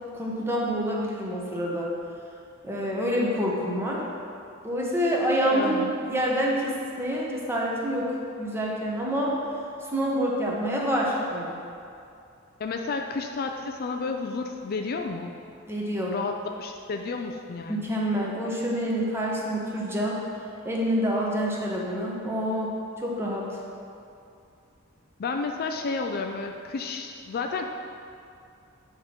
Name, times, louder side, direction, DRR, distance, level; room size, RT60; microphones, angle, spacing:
voice 1, 0.1-1.9 2.6-4.0 4.6-9.4 9.8-11.6 15.7-16.1 17.7-20.2 20.6-23.6, equal, 10° right, -4 dB, 1.1 m, -27 dB
voice 2, 5.5-5.9 12.6-15.3 16.1-16.3 16.6-17.9 25.2-27.7, left 4 dB, 45° left, 4 dB, 0.4 m, -31 dB
7.8 x 3.9 x 6.0 m, 2.5 s
head